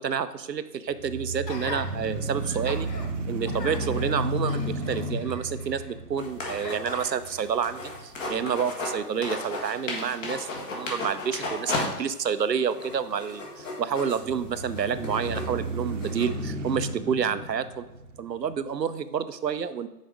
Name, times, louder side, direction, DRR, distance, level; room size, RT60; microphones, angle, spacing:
voice 1, 0.0-2.9 3.3-17.8 18.2-19.9, right 7 dB, 85° right, 12 dB, 0.6 m, -29 dB
sound 1, 0.9-9.0 9.5-9.6 14.1-18.6, right 2 dB, 50° right, 0.8 m, -33 dB
Gasp, 1.5-1.9 2.4-3.1 3.4-5.9 6.4-7.5 8.1-8.3, left 3 dB, 80° left, 1.0 m, -40 dB
sound 2, 6.2-8.9 9.2-11.8 12.2-12.3 12.7-16.3, left 2 dB, 50° left, 1.8 m, -34 dB
6.5 x 4.1 x 4.7 m, 0.93 s
figure-of-eight pair, 120°, 48 cm